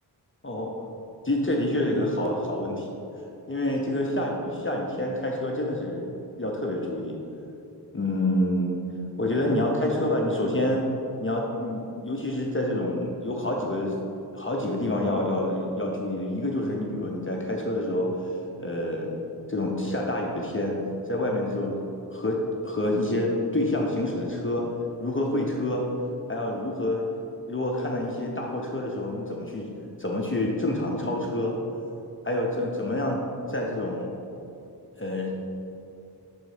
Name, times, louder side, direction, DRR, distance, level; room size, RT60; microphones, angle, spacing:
voice 1, 0.4-0.8 1.2-2.9 3.5-6.1 6.4-7.2 7.9-8.7 9.2-10.9 11.2-14.0 14.3-18.3 18.6-19.1 19.5-20.8 21.1-21.8 22.1-24.7 25.0-25.9 26.3-27.0 27.5-29.7 30.0-31.6 32.2-33.2 33.5-34.1 35.0-35.5, left 1 dB, 30° left, -1 dB, 0.6 m, -27 dB
6.2 x 3.9 x 4.9 m, 2.7 s
wide cardioid pair, 70°, 41 cm